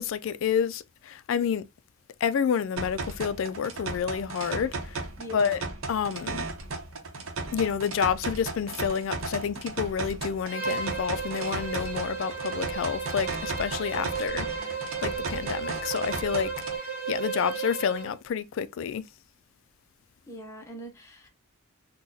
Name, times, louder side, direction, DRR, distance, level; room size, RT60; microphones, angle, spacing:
voice 1, 0.0-1.6 2.2-5.1 5.3-5.6 5.9-6.4 7.5-16.5 17.1-19.0, left 7 dB, 65° left, 0.3 m, -29 dB
sound 1, 2.8-16.8, right 3 dB, 70° right, 0.8 m, -35 dB
voice 2, 5.2-5.8 13.9-14.8 20.3-21.3, equal, 15° left, 0.6 m, -44 dB
Bowed string instrument, 10.5-18.1, right 5 dB, 10° right, 1.0 m, -34 dB
3.9 x 2.2 x 2.6 m
head